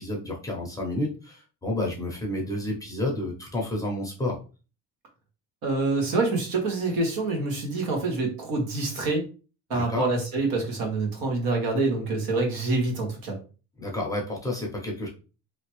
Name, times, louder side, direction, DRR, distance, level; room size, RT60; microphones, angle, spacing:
voice 1, 0.0-4.4 9.7-10.1 13.8-15.1, left 1 dB, 10° left, -2 dB, 0.6 m, -30 dB
voice 2, 5.6-9.2 9.7-13.4, right 3 dB, 75° right, 2 dB, 1.4 m, -26 dB
3.3 x 2.9 x 3.0 m, 0.34 s
cardioid pair, 170°, 36 cm